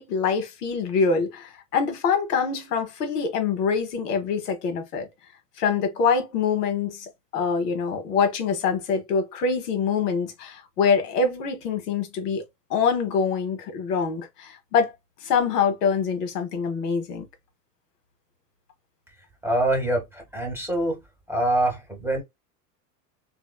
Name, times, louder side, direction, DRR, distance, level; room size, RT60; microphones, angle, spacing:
voice 1, 0.0-5.1 5.6-12.4 12.7-14.9 15.2-17.3, left 5 dB, 75° left, 1.1 m, -25 dB
voice 2, 19.4-21.0 21.3-22.2, right 1 dB, 5° right, 1.0 m, -25 dB
3.2 x 2.6 x 2.2 m
hypercardioid pair, 85°, 47 cm